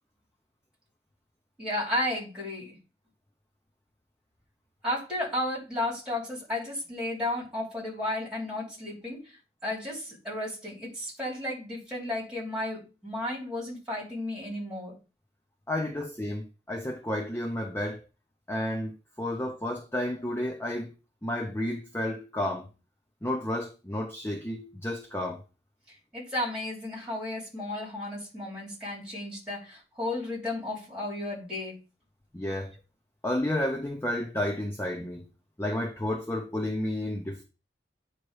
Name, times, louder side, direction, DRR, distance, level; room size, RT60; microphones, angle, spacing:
voice 1, 1.6-2.8 4.8-15.0 26.1-31.8, left 1 dB, 5° right, 3.0 m, -33 dB
voice 2, 15.7-18.0 18.5-18.9 19.2-20.9 21.2-22.7 23.2-25.4 32.3-32.7 33.2-35.2 35.6-37.4, left 1 dB, 15° left, 0.7 m, -31 dB
9.0 x 3.0 x 4.8 m
head